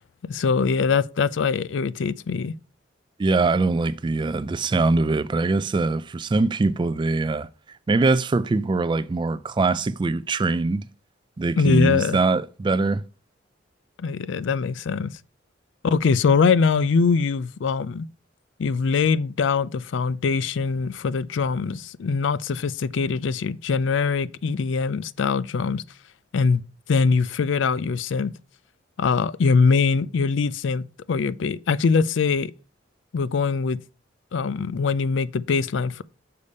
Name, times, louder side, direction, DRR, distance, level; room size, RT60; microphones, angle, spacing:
voice 1, 0.2-2.5 11.6-12.2 14.0-15.1 15.8-18.1 18.6-25.8 26.3-26.6 26.9-28.3 29.0-32.5 33.1-33.8 34.3-36.0, left 5 dB, 70° left, 0.4 m, -22 dB
voice 2, 3.2-7.5 7.9-10.9 11.4-13.0, right 3 dB, 25° right, 0.3 m, -22 dB
6.7 x 5.4 x 5.2 m
head